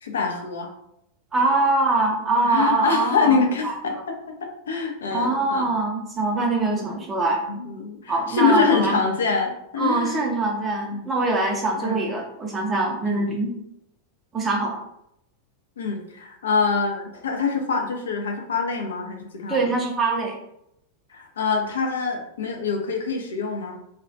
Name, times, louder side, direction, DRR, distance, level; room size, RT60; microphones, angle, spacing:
voice 1, 0.0-0.7 2.4-4.2 4.7-5.7 6.7-7.0 7.5-10.2 10.9-11.1 11.8-12.1 13.0-13.2 15.8-19.7 21.1-23.8, left 5 dB, 65° left, 3 dB, 0.4 m, -25 dB
voice 2, 1.3-4.0 5.1-7.4 8.1-9.0 9.8-13.5 14.3-14.8 19.5-20.3, right 2 dB, 15° right, -1 dB, 0.4 m, -23 dB
2.2 x 2.1 x 2.6 m, 0.79 s
figure-of-eight pair, 90°, 0 cm